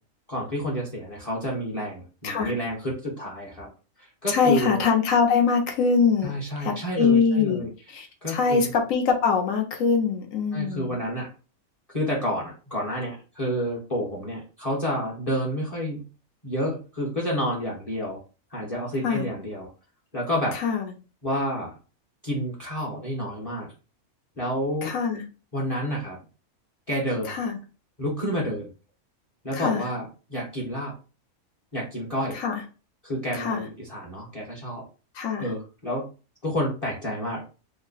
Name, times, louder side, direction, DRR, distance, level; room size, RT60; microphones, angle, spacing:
voice 1, 0.3-3.7 4.0-4.8 6.2-7.7 8.2-8.6 10.5-11.3 11.9-16.1 16.4-18.2 18.5-19.7 20.1-20.6 21.2-21.8 22.2-23.7 24.4-24.9 25.5-26.2 26.9-27.3 28.0-28.7 29.4-30.0 30.3-30.9 31.7-32.4 33.0-34.8 35.4-36.1 36.4-37.5, equal, 30° left, -3 dB, 0.9 m, -29 dB
voice 2, 4.3-11.0 19.0-19.3 20.5-20.9 24.8-25.2 27.2-27.6 29.5-29.9 32.3-32.6 33.3-33.6 35.1-35.5, left 5 dB, 70° left, 4 dB, 1.0 m, -23 dB
3.2 x 2.1 x 3.8 m, 0.34 s
omnidirectional pair, 1.5 m